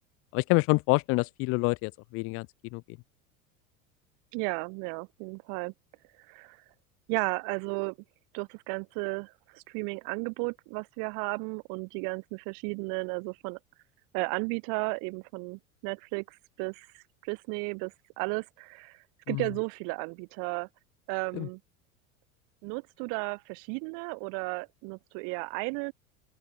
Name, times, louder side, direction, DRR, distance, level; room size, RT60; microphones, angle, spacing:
voice 1, 0.3-2.5 2.7-3.0 19.3-19.4 21.3-21.5, left 26 dB, 35° left, 0.4 m, -27 dB
voice 2, 4.3-5.7 6.3-6.6 7.1-8.0 8.3-13.6 14.1-20.7 21.1-21.6 22.6-25.9, right 40 dB or more, 50° right, 3.1 m, -34 dB
open air
figure-of-eight pair, 80°, 42 cm